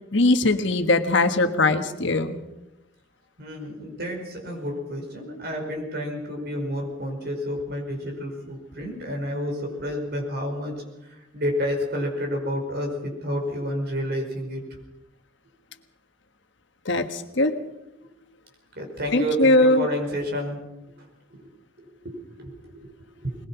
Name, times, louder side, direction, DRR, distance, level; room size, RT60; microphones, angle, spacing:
voice 1, 0.1-2.4 16.8-17.6 19.1-19.9, left 2 dB, 60° left, 7 dB, 1.5 m, -20 dB
voice 2, 3.4-10.8 11.3-14.6 18.8-20.6 21.3-21.5 22.0-22.9 23.2-23.4, equal, 50° right, 2 dB, 5.4 m, -30 dB
21.5 x 21.0 x 5.9 m, 0.95 s
head